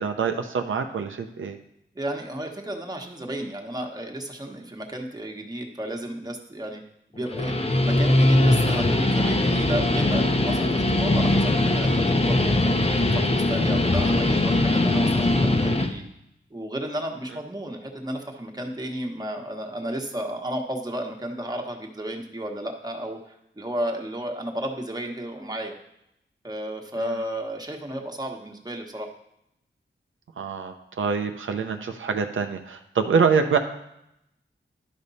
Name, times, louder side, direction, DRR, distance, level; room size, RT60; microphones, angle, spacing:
voice 1, 0.0-1.6 30.4-33.6, right 6 dB, 90° right, 5 dB, 0.7 m, -25 dB
voice 2, 1.9-6.8 7.1-16.0 16.5-25.8 26.4-29.1, right 1 dB, 20° right, 2 dB, 1.3 m, -33 dB
Guitar, 7.2-15.9, left 1 dB, 30° left, 0.8 m, -21 dB
11.5 x 5.2 x 4.1 m, 0.80 s
wide cardioid pair, 80°, 20 cm